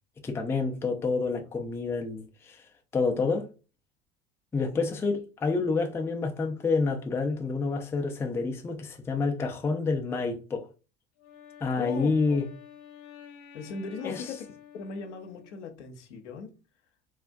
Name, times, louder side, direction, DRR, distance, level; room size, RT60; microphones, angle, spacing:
voice 1, 0.2-2.6 2.9-3.5 4.5-10.7 11.6-12.5 14.0-14.2, left 4 dB, 5° left, 0.3 m, -28 dB
Wind instrument woodwind instrument, 11.2-15.9, left 9 dB, 55° left, 0.9 m, -50 dB
voice 2, 11.8-12.4 13.5-14.5 14.7-16.5, left 5 dB, 80° left, 0.7 m, -38 dB
3.3 x 2.4 x 2.2 m
hypercardioid pair, 75°, 35 cm